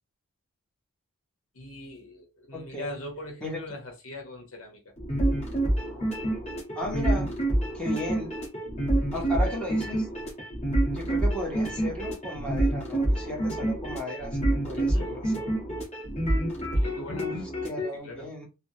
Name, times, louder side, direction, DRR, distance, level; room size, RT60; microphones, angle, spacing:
voice 1, 1.5-4.8 9.1-9.6 9.9-10.0 14.7-15.2 16.7-17.3 17.9-18.3, left 2 dB, 65° left, 1.0 m, -41 dB
voice 2, 2.5-3.0 3.4-3.6 6.8-7.3 7.7-8.3 9.1-10.1 10.9-15.5 17.1-17.4 17.6-18.5, left 1 dB, 5° left, 0.8 m, -35 dB
sound 1, 5.0-17.9, right 1 dB, 30° left, 1.2 m, -27 dB
3.3 x 2.0 x 2.7 m
head